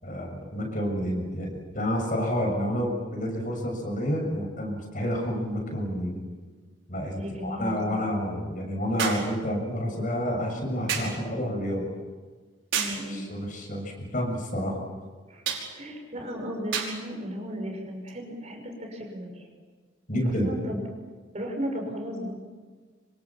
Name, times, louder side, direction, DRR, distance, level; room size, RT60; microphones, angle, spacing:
voice 1, 0.0-6.2 6.9-11.9 13.1-14.8 20.1-20.5, equal, 45° left, 2 dB, 6.9 m, -29 dB
sound 1, 5.2-5.3 9.0-9.3 10.9-11.2 12.7-13.1 15.4-15.7 16.7-17.0 18.1-18.2, right 7 dB, 80° right, 5.4 m, -29 dB
voice 2, 7.0-8.2 12.7-13.3 15.3-15.4 15.7-19.5 20.4-20.8 21.3-22.3, equal, 35° right, 2 dB, 6.2 m, -35 dB
27.0 x 25.5 x 7.4 m, 1.4 s
head